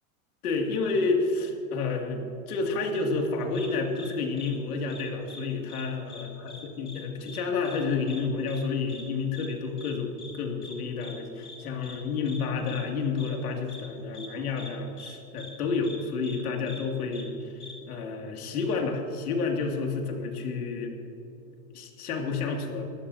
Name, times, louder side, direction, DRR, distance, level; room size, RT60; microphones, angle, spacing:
voice 1, 0.4-20.9 21.7-22.8, left 4 dB, 85° left, 2 dB, 2.6 m, -30 dB
sound 1, 3.5-3.7 4.0-4.1 4.4-4.5 4.9-5.4 5.7-5.8 6.1-6.6 6.9-7.0 7.3-7.4 7.6-7.8 8.1-8.2 8.5-8.6 8.9-9.0 9.3-9.5 9.8-9.9 10.2-10.3 10.6-10.7 11.0-11.1 11.4-11.6 11.8-12.0 12.3-12.4 12.7-12.8 13.2-13.3 13.7-13.8 14.1-14.3 14.6-14.7 15.0-15.1 15.4-15.5 15.8-16.0 16.2-16.4 16.6-16.8 17.1-17.2 17.6-17.7, left 3 dB, 10° left, 2.4 m, -44 dB
21.0 x 14.5 x 2.8 m, 3.0 s
supercardioid pair, 140°, 43 cm